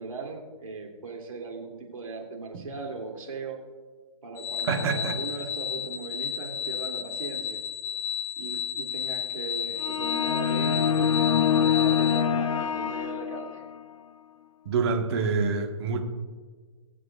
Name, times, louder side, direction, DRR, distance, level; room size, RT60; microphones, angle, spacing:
voice 1, 0.0-3.6 4.2-7.6 8.4-13.6, right 4 dB, 85° right, 1 dB, 3.0 m, -38 dB
sound 1, 4.4-12.2, left 8 dB, 40° left, 1.6 m, -32 dB
voice 2, 4.7-5.1 14.6-16.0, right 4 dB, 50° right, 4 dB, 1.6 m, -26 dB
sound 2, 9.8-13.8, left 8 dB, 80° left, 0.6 m, -25 dB
23.5 x 7.9 x 2.5 m, 1.5 s
hypercardioid pair, 145°, 17 cm